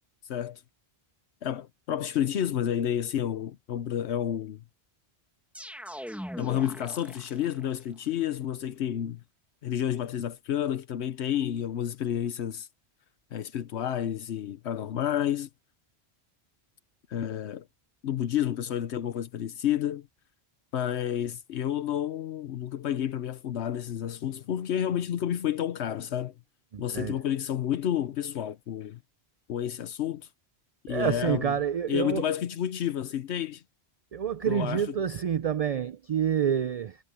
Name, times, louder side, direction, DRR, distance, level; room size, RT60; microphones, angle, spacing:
voice 1, 0.2-0.6 1.4-4.6 6.4-9.2 9.6-12.7 13.3-15.5 17.1-17.7 18.0-20.1 20.7-26.3 26.8-29.0 29.5-30.3 30.8-31.5 31.9-33.6 34.5-34.8, left 10 dB, 85° left, 1.0 m, -30 dB
sound 1, 5.5-7.8, equal, ahead, 1.7 m, -41 dB
voice 2, 26.7-27.2 30.9-32.2 34.1-37.0, right 8 dB, 55° right, 0.4 m, -28 dB
omnidirectional pair, 1.1 m